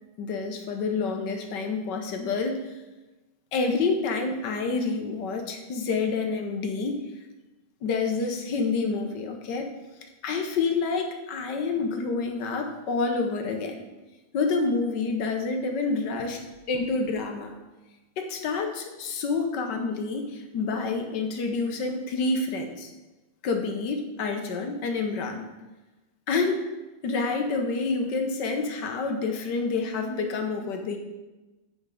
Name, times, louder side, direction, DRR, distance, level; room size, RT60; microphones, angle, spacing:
voice 1, 0.2-2.6 3.5-7.0 7.8-9.7 10.2-13.7 14.3-16.4 16.7-17.5 18.2-22.9 23.4-25.5 26.3-26.7 27.0-31.0, left 4 dB, 60° left, 4 dB, 1.4 m, -28 dB
8.9 x 5.0 x 4.9 m, 1.1 s
omnidirectional pair, 2.4 m